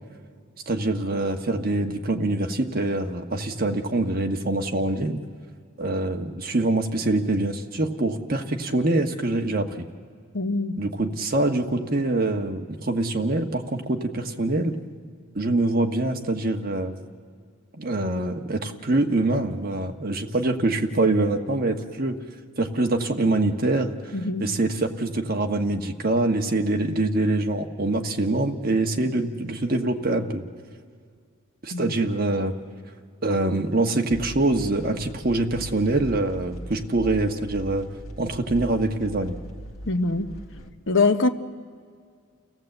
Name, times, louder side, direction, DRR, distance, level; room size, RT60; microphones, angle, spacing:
voice 1, 0.7-5.2 5.8-9.9 10.8-14.7 15.3-17.0 17.8-22.2 22.6-24.0 24.4-30.4 31.6-32.5 33.2-37.9 38.2-39.4, right 2 dB, 45° right, 1.3 m, -24 dB
voice 2, 10.3-10.8 24.1-24.5 31.7-31.9 39.9-40.3 40.9-41.3, left 3 dB, 60° left, 1.0 m, -23 dB
sound 1, 34.1-40.7, equal, 80° left, 1.6 m, -39 dB
30.0 x 16.5 x 7.9 m
head